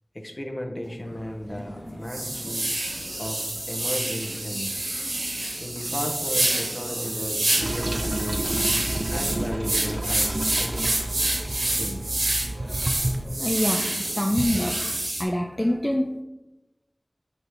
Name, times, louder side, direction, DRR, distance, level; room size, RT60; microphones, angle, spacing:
voice 1, 0.1-2.7 3.2-4.9 5.6-8.5 9.1-10.9 11.5-12.0 15.6-15.8, equal, 35° left, 3 dB, 0.9 m, -35 dB
sound 1, 0.9-1.0 1.5-1.6 2.1-15.2, right 2 dB, 85° right, 0.9 m, -28 dB
sound 2, 1.0-15.0, equal, 85° left, 1.0 m, -43 dB
Toilet flush, 7.6-13.2, right 1 dB, 65° right, 0.4 m, -30 dB
voice 2, 13.4-14.8 15.2-16.2, left 1 dB, 20° left, 2 dB, 0.4 m, -25 dB
4.5 x 4.2 x 5.0 m, 1.0 s
wide cardioid pair, 45°, 0 cm